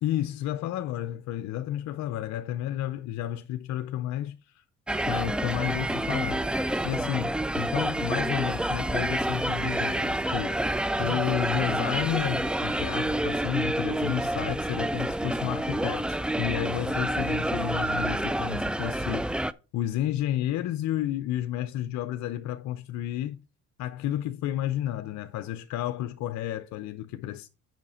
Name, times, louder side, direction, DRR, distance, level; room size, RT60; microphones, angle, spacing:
voice 1, 0.0-4.6 5.0-10.7 11.0-19.4 19.7-23.4 23.8-27.5, left 12 dB, 65° left, 0.6 m, -31 dB
sound 1, 4.9-19.5, right 1 dB, 5° right, 0.3 m, -28 dB
7.4 x 5.7 x 4.2 m
supercardioid pair, 85°, 31 cm